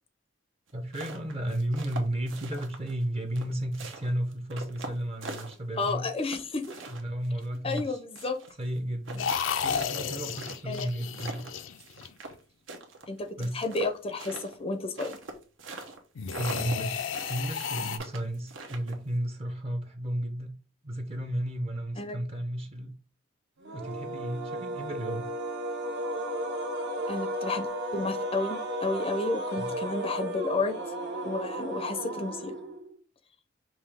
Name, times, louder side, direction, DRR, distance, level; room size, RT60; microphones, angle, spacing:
voice 1, 0.7-6.1 6.9-8.0 8.6-9.3 9.6-11.5 13.4-13.6 16.4-20.5 20.8-22.9 23.7-25.3 29.6-29.7, right 1 dB, 30° right, 0.6 m, -33 dB
sound 1, 0.7-3.0 3.4-5.9 6.3-8.5 8.8-8.9 9.1-12.4 12.7-16.0 16.3-16.8 17.1-19.1, right 3 dB, 85° right, 1.0 m, -42 dB
voice 2, 5.8-6.7 7.6-8.4 10.7-10.9 13.1-13.3 13.5-15.2 22.0-22.2 27.1-30.8 31.2-32.5, left 3 dB, 30° left, 0.5 m, -31 dB
sound 2, 9.2-12.4 16.2-18.0, left 7 dB, 85° left, 0.5 m, -33 dB
sound 3, 23.6-33.0, right 1 dB, 65° right, 0.9 m, -34 dB
5.5 x 2.6 x 3.4 m
head